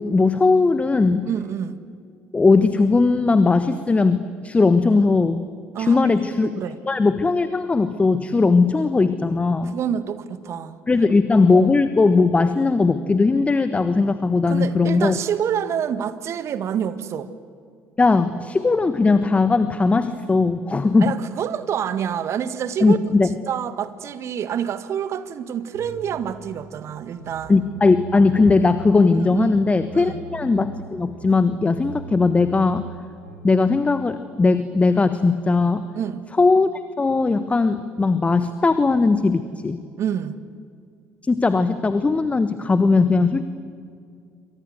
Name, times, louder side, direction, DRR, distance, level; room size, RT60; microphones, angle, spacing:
voice 1, 0.0-1.3 2.3-5.5 5.8-6.5 6.9-9.7 10.9-15.2 18.0-21.2 22.8-23.3 27.5-32.9 33.4-35.8 36.4-36.7 37.0-39.8 41.2-43.4, left 3 dB, 20° left, 11 dB, 1.3 m, -18 dB
voice 2, 1.3-1.8 5.7-6.1 6.6-6.8 9.7-10.8 11.5-11.7 14.5-17.3 21.0-23.0 23.5-27.6 29.2-29.7 29.9-30.2 35.9-36.3 40.0-40.4, right 8 dB, 50° right, 12 dB, 1.7 m, -27 dB
sound 1, 25.7-33.6, right 6 dB, 90° right, 3.5 m, -40 dB
28.0 x 25.0 x 8.0 m, 2.3 s
figure-of-eight pair, 55°, 6 cm